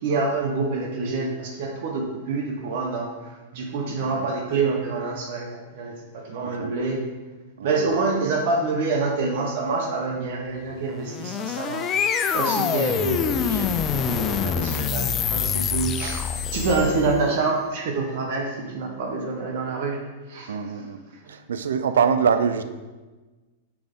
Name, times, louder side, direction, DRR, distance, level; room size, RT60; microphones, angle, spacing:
voice 1, 0.0-3.1 3.5-7.0 7.6-11.9 12.3-20.0 20.3-20.6, right 3 dB, 60° right, 1 dB, 1.0 m, -27 dB
voice 2, 6.4-6.7 7.6-7.9 20.5-21.0 21.3-22.6, right 6 dB, 80° right, 10 dB, 0.4 m, -24 dB
sound 1, 10.9-17.3, left 7 dB, 30° left, 0.4 m, -25 dB
6.0 x 4.9 x 3.6 m, 1.2 s
hypercardioid pair, 115°, 0 cm